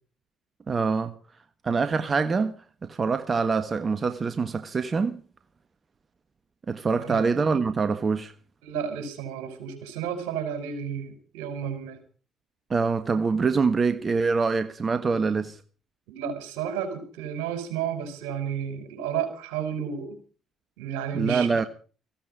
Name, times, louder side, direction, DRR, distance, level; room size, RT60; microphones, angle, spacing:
voice 1, 0.7-1.2 1.6-2.6 2.8-5.2 6.7-8.3 12.7-15.6 21.1-21.6, right 4 dB, 40° right, 1.4 m, -25 dB
voice 2, 8.6-12.0 16.1-20.2 20.8-21.5, right 8 dB, 85° right, 4.4 m, -32 dB
17.5 x 16.0 x 5.1 m
hypercardioid pair, 55°, 0 cm